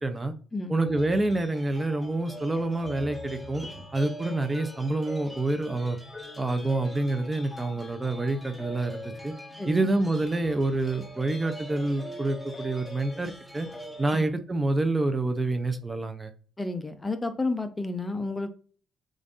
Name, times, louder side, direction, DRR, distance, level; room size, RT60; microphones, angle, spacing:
voice 1, 0.0-0.3 0.7-3.6 3.9-6.0 6.4-9.3 9.7-13.7 14.0-16.3, right 2 dB, 20° right, 8 dB, 0.7 m, -27 dB
sound 1, 0.8-14.3, equal, 5° right, 1.3 m, -42 dB
voice 2, 16.6-18.5, left 3 dB, 20° left, 9 dB, 0.6 m, -31 dB
7.0 x 2.6 x 2.6 m, 0.42 s
cardioid pair, 90°, 0 cm